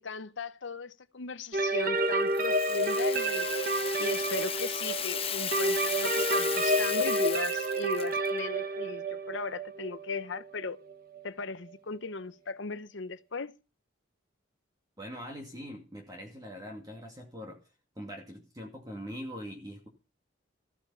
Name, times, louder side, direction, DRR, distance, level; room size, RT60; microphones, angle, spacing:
voice 1, 0.0-3.5 4.0-10.8 11.2-13.5, left 4 dB, 65° left, 0.8 m, -37 dB
sound 1, 1.5-11.2, right 1 dB, 45° right, 1.5 m, -30 dB
Rattle (instrument), 2.3-8.3, left 9 dB, 30° left, 0.9 m, -35 dB
voice 2, 15.0-17.6 18.0-19.9, equal, 20° right, 2.4 m, -42 dB
15.0 x 10.0 x 5.7 m
head